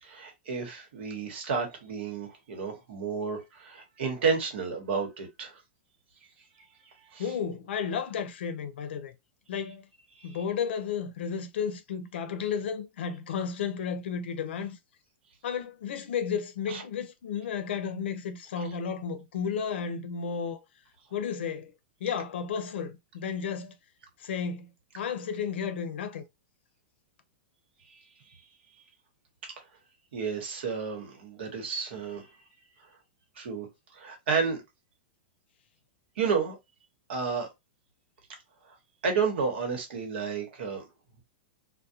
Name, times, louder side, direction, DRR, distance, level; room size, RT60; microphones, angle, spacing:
voice 1, 0.0-5.6 7.1-7.2 10.2-10.3 16.7-16.8 30.1-32.3 33.4-33.7 33.9-34.6 36.2-36.6 37.1-37.5 39.0-40.9, right 5 dB, 80° right, 1.1 m, -31 dB
voice 2, 7.2-9.1 9.5-9.9 10.2-14.8 15.4-20.6 21.1-21.7 22.0-23.7 24.2-24.7 24.9-26.2, left 7 dB, 80° left, 0.5 m, -33 dB
2.4 x 2.1 x 2.7 m
supercardioid pair, 155°, 6 cm